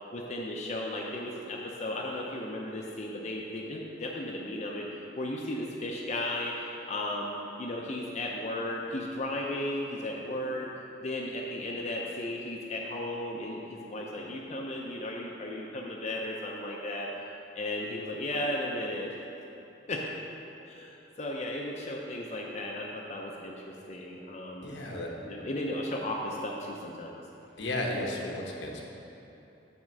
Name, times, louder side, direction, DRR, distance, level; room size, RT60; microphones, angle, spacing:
voice 1, 0.1-10.7 11.0-17.1 17.6-19.1 19.9-20.0 20.7-23.5 23.9-24.7 25.2-27.2, left 1 dB, 40° left, -1 dB, 0.5 m, -35 dB
voice 2, 24.6-25.1 27.6-28.8, left 1 dB, 80° left, -1 dB, 1.0 m, -33 dB
7.2 x 3.6 x 6.4 m, 3.0 s
head